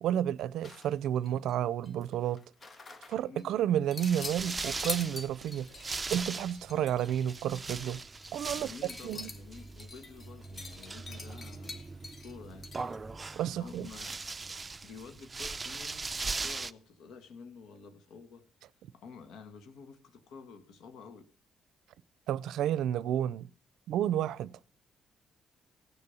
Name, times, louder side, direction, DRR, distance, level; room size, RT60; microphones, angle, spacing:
voice 1, 0.0-2.4 3.1-8.0 8.3-8.7 9.0-9.3 13.4-13.9 22.3-23.5 23.9-24.5, right 10 dB, 80° right, 0.5 m, -31 dB
sound 1, 0.6-1.6 1.8-3.4 3.9-13.0, left 3 dB, 40° left, 1.4 m, -45 dB
sound 2, 4.0-16.7, right 3 dB, 25° right, 0.6 m, -40 dB
voice 2, 8.5-12.7 13.1-14.2 14.8-16.0 16.4-18.5 18.9-21.3, left 5 dB, 80° left, 1.6 m, -50 dB
16.5 x 6.8 x 7.0 m
cardioid pair, 90°, 0 cm